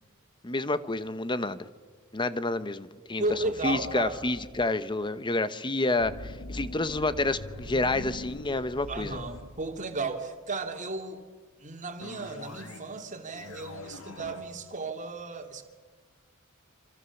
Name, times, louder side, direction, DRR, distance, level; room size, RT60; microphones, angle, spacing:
voice 1, 0.4-1.6 2.1-3.2 3.6-9.2, left 2 dB, 20° left, 13 dB, 1.0 m, -29 dB
voice 2, 3.2-4.2 8.9-11.2 11.6-15.6, right 3 dB, 35° right, 5 dB, 2.7 m, -34 dB
sound 1, 3.3-4.7 6.0-10.2 12.0-12.9 13.3-14.4, left 1 dB, 70° left, 2.0 m, -43 dB
27.5 x 25.5 x 7.2 m, 1.4 s
head